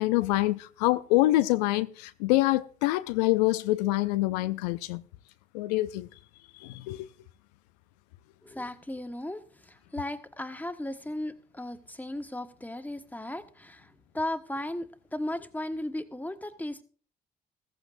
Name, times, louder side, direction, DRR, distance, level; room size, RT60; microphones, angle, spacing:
voice 1, 0.0-5.0 5.5-6.1 6.6-7.1, left 18 dB, 85° left, 0.5 m, -26 dB
voice 2, 8.4-16.8, left 1 dB, 10° left, 1.4 m, -36 dB
15.0 x 14.5 x 2.6 m
hypercardioid pair, 50°, 21 cm